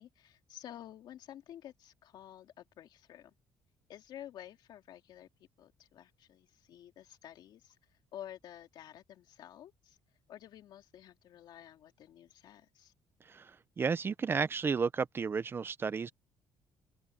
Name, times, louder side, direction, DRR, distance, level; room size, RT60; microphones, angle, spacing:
voice 1, 0.0-3.3 3.9-5.3 5.6-10.0 10.3-12.9, left 11 dB, 65° left, 2.3 m, -51 dB
voice 2, 13.3-16.1, right 5 dB, 30° right, 0.7 m, -33 dB
open air
cardioid pair, 125°, 8 cm